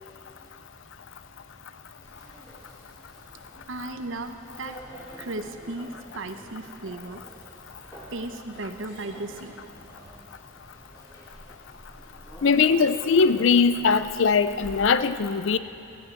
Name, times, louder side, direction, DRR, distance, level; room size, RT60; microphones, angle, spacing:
sound 1, 2.0-14.9, equal, 20° left, 2.4 m, -48 dB
voice 1, 3.7-4.8 5.2-7.2 8.1-9.6, right 2 dB, 75° right, 7 dB, 0.9 m, -35 dB
voice 2, 12.4-15.6, left 5 dB, 70° left, 12 dB, 0.5 m, -20 dB
17.0 x 14.0 x 4.6 m, 2.8 s
head